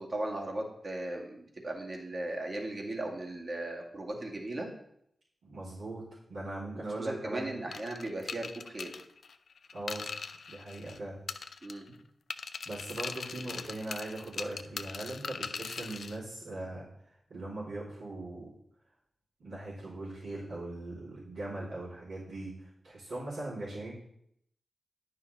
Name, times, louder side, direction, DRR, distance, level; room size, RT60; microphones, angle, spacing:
voice 1, 0.0-4.7 6.7-9.0 11.6-11.9, right 1 dB, 50° right, 0 dB, 2.0 m, -37 dB
voice 2, 5.4-6.0 6.3-7.7 9.7-10.1 10.5-11.2 12.7-16.9 17.3-18.5 19.4-23.9, right 2 dB, 90° right, -14 dB, 3.5 m, -40 dB
sound 1, 7.7-11.0 11.3-12.0 12.3-16.2, left 5 dB, 75° left, 0.4 m, -40 dB
9.5 x 5.6 x 4.0 m, 0.73 s
cardioid pair, 40°, 0 cm